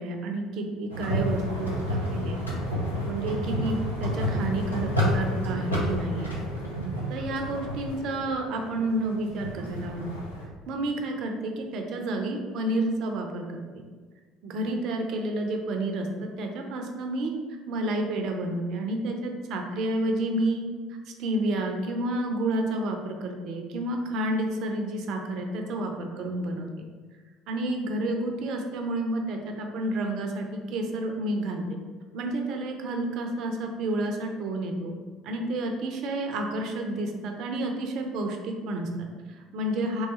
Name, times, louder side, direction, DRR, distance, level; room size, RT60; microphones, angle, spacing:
voice 1, 0.0-2.4 3.0-6.3 7.1-10.1 10.7-13.8 14.4-16.1 16.4-17.3 17.7-20.6 21.2-26.7 27.5-31.6 32.1-34.9 35.2-40.1, right 1 dB, 50° right, 3 dB, 0.5 m, -30 dB
sound 1, 0.9-10.5, equal, 85° left, 0.6 m, -30 dB
3.2 x 3.1 x 3.0 m, 1.4 s
figure-of-eight pair, 60°, 0 cm